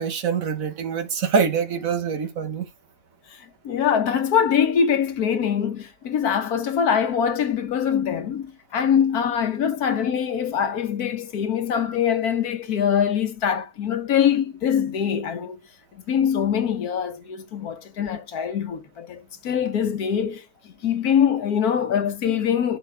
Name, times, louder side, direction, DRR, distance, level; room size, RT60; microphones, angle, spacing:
voice 1, 0.0-2.7, right 6 dB, 65° right, 1.5 m, -24 dB
voice 2, 3.6-15.6 15.9-22.8, left 8 dB, 90° left, 1.5 m, -23 dB
12.5 x 6.0 x 3.4 m
omnidirectional pair, 1.5 m